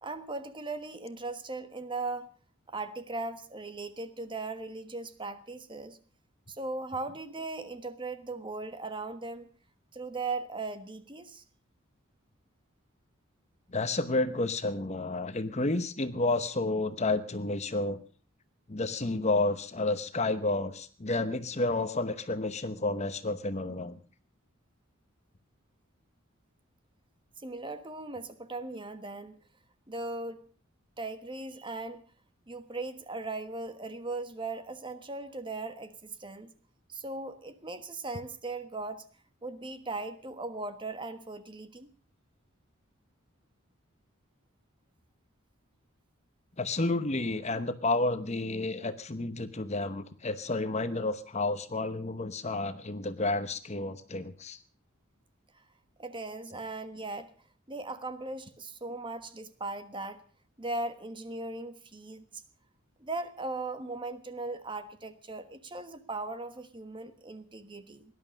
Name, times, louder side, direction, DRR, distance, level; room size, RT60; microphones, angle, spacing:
voice 1, 0.0-2.3 2.7-6.0 6.5-9.5 9.9-11.4 27.4-29.4 29.9-30.4 31.0-32.0 32.5-36.5 36.9-39.0 39.4-41.9 55.5-55.6 56.0-57.3 57.7-60.2 60.6-62.2 63.0-68.0, right 3 dB, 25° right, 10 dB, 1.3 m, -38 dB
voice 2, 13.7-18.0 18.7-24.0 46.6-54.6, left 2 dB, 35° left, 11 dB, 0.9 m, -30 dB
18.5 x 11.5 x 6.4 m, 0.41 s
head